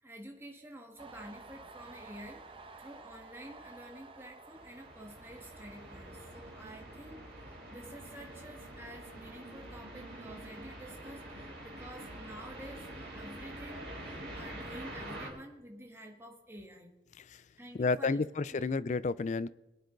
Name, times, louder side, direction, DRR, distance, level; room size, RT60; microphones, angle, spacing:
voice 1, 0.0-2.5 2.8-17.0 17.6-18.2 18.5-18.7, right 1 dB, 15° right, 1.6 m, -50 dB
Train, 1.0-8.4 8.8-9.6, right 3 dB, 30° right, 0.9 m, -53 dB
sound 1, 4.5-15.3, right 1 dB, 65° right, 4.2 m, -46 dB
voice 2, 17.7-19.5, left 4 dB, 40° left, 0.4 m, -31 dB
21.5 x 9.1 x 3.9 m
head